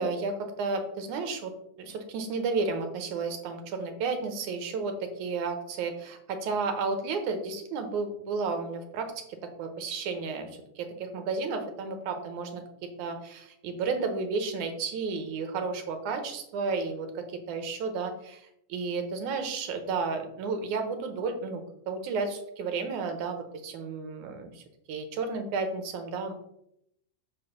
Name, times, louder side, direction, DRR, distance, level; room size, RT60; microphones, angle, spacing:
voice 1, 0.0-1.5 1.8-12.6 13.0-26.3, right 4 dB, 80° right, 6 dB, 2.6 m, -32 dB
8.0 x 4.6 x 6.8 m, 0.77 s
omnidirectional pair, 3.5 m